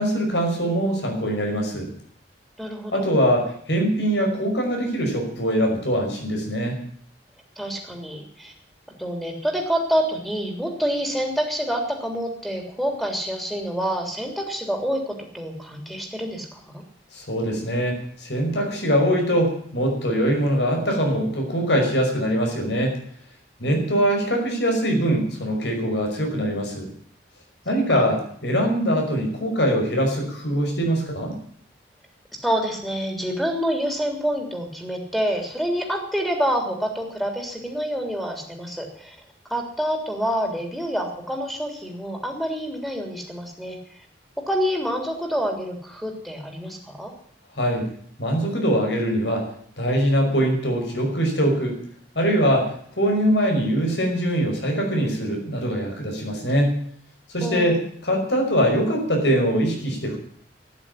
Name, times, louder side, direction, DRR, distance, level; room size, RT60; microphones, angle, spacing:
voice 1, 0.0-1.9 2.9-6.8 17.1-22.9 23.6-26.9 27.7-31.3 47.5-47.9 48.2-49.5 49.8-51.8 52.2-56.8 57.3-60.2, equal, 80° left, 2 dB, 5.5 m, -22 dB
voice 2, 2.6-3.1 7.6-8.5 9.0-16.8 23.7-24.0 27.9-28.1 32.3-39.1 39.5-43.8 44.4-47.1 57.4-57.8, equal, ahead, 1 dB, 3.4 m, -27 dB
12.0 x 10.5 x 9.9 m, 0.62 s
head